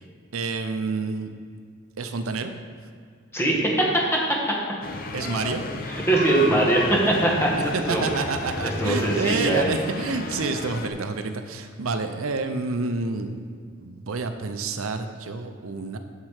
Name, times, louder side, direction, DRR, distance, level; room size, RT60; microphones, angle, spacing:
voice 1, 0.3-1.3 2.0-2.5 5.1-5.6 7.7-13.3 13.8-16.0, right 4 dB, 80° right, 8 dB, 0.6 m, -28 dB
voice 2, 3.3-4.0 5.9-7.5 7.9-8.0 8.6-9.7, right 1 dB, 10° left, -2 dB, 1.5 m, -21 dB
sound 1, 4.8-10.9, left 2 dB, 45° left, 0.6 m, -32 dB
7.5 x 7.5 x 4.9 m, 2.2 s
head